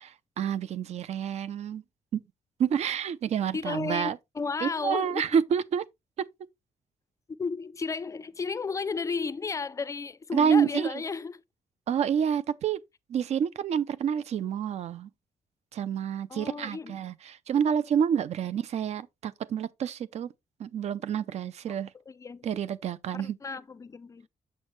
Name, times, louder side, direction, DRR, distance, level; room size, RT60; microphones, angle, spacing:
voice 1, 0.4-1.8 2.1-2.2 2.6-4.2 4.6-5.8 10.3-11.0 11.9-12.8 13.1-15.1 15.7-20.3 20.6-21.9 22.4-23.4, right 8 dB, 60° right, 0.6 m, -28 dB
voice 2, 3.5-5.3 7.4-11.4 16.3-17.0 21.7-21.8 22.1-22.6 23.1-24.3, left 4 dB, 25° left, 0.4 m, -33 dB
7.3 x 6.2 x 3.2 m
wide cardioid pair, 160°, 13 cm